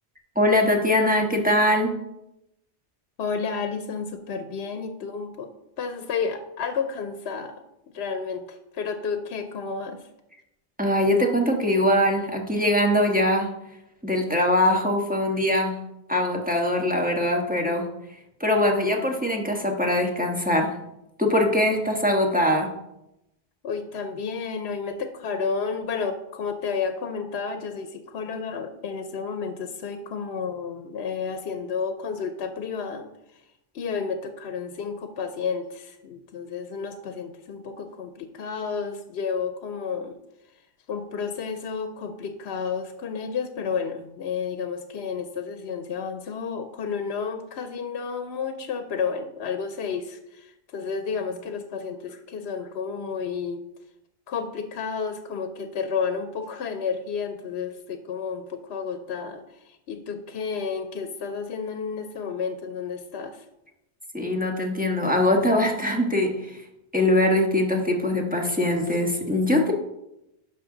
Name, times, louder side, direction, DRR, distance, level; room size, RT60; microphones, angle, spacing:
voice 1, 0.3-1.9 10.8-13.5 14.0-15.7 16.1-17.9 18.4-20.7 21.2-22.7 64.1-66.6 66.9-69.7, left 1 dB, 10° right, 1 dB, 1.2 m, -22 dB
voice 2, 3.2-5.5 5.8-7.5 7.9-10.0 23.6-33.1 33.7-40.2 40.9-53.6 54.3-59.4 59.9-63.4, left 5 dB, 75° left, 8 dB, 0.9 m, -31 dB
11.0 x 5.5 x 3.8 m, 0.87 s
omnidirectional pair, 1.1 m